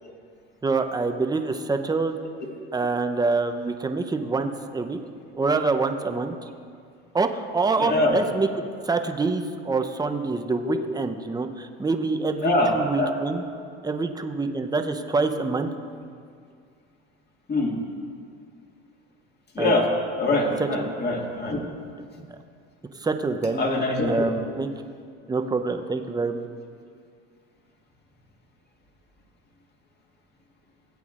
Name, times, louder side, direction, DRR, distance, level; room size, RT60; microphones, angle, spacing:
voice 1, 0.6-2.1 2.7-5.0 5.3-6.4 7.1-8.5 8.8-13.4 13.8-15.7 19.6-19.7 23.0-23.6 24.1-24.7 25.3-26.5, right 3 dB, 15° right, 6 dB, 0.7 m, -26 dB
voice 2, 7.8-8.2 10.6-10.8 12.4-13.2 17.5-17.7 19.5-19.9 20.2-21.6 23.5-24.2, left 2 dB, 35° left, 0 dB, 2.0 m, -23 dB
17.5 x 8.4 x 2.5 m, 2.2 s
hypercardioid pair, 80°, 30 cm